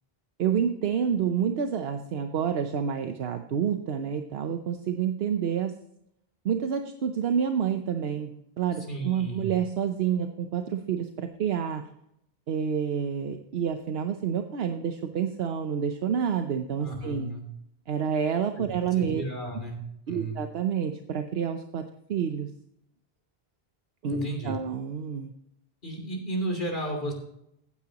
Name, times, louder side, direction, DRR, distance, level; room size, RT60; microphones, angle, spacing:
voice 1, 0.4-5.8 6.4-11.8 12.5-17.3 17.9-19.2 20.1-22.5 24.0-25.3, right 7 dB, 75° right, 7 dB, 1.0 m, -28 dB
voice 2, 8.9-9.5 16.8-17.4 18.6-18.7 19.0-19.8 20.1-20.4 24.1-24.5 25.8-27.1, right 1 dB, 55° left, 1 dB, 3.2 m, -33 dB
14.5 x 9.8 x 2.9 m, 0.77 s
omnidirectional pair, 1.0 m